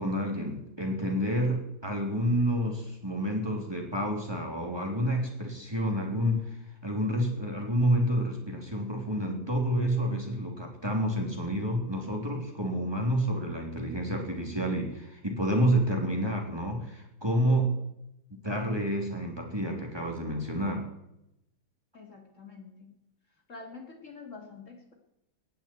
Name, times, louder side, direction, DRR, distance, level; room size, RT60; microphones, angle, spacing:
voice 1, 0.0-6.6 6.8-17.7 18.4-20.9, equal, 15° right, 1 dB, 3.1 m, -29 dB
voice 2, 21.9-22.9 23.5-24.9, left 4 dB, 45° left, 3 dB, 2.6 m, -46 dB
19.0 x 15.0 x 4.5 m, 0.85 s
omnidirectional pair, 1.9 m